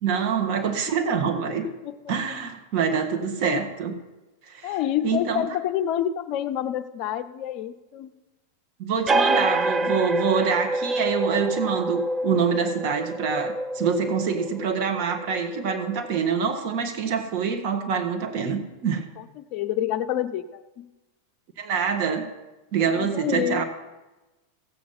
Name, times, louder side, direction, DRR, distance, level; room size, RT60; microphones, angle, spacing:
voice 1, 0.0-1.7 2.1-3.9 4.5-4.8 5.0-5.5 8.8-19.1 21.6-22.3 22.7-23.6, right 6 dB, 45° right, 5 dB, 1.5 m, -25 dB
voice 2, 4.6-8.2 19.2-20.9 22.8-23.6, left 11 dB, 40° left, 10 dB, 0.5 m, -28 dB
sound 1, 9.1-16.3, right 2 dB, 15° right, 0.5 m, -27 dB
15.0 x 7.7 x 5.5 m, 1.1 s
figure-of-eight pair, 90°, 0 cm